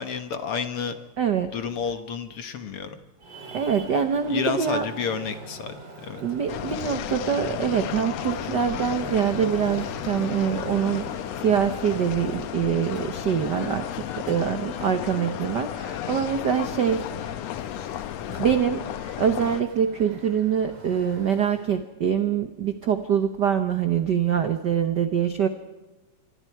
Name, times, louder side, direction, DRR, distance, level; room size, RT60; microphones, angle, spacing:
voice 1, 0.0-1.0 1.5-3.0 4.3-6.2, left 6 dB, 55° left, 9 dB, 2.0 m, -30 dB
voice 2, 1.2-1.5 3.5-4.9 6.2-17.4 18.3-18.9 19.2-25.5, right 8 dB, 70° right, 9 dB, 1.0 m, -24 dB
Traffic noise roadway noise, 3.2-21.9, right 2 dB, 45° right, 4.6 m, -44 dB
sound 1, 6.5-19.6, left 12 dB, 70° left, 1.8 m, -33 dB
26.5 x 24.0 x 4.7 m, 1.1 s
omnidirectional pair, 3.4 m